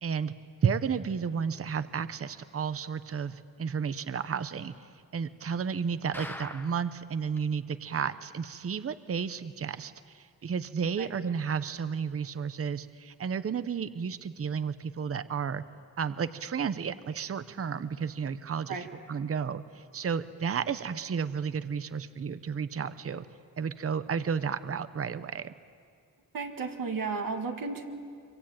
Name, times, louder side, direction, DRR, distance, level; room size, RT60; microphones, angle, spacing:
voice 1, 0.0-0.3 0.6-4.7 5.1-15.6 16.0-23.3 23.6-25.5, right 6 dB, 45° right, 13 dB, 0.7 m, -32 dB
sound 1, 6.1-7.0 7.4-7.5 7.7-7.8 8.3-8.4, left 1 dB, 5° left, 1.0 m, -42 dB
voice 2, 26.3-27.9, right 4 dB, 75° right, 4 dB, 2.0 m, -33 dB
25.5 x 24.0 x 8.8 m, 2.2 s
wide cardioid pair, 175°, 34 cm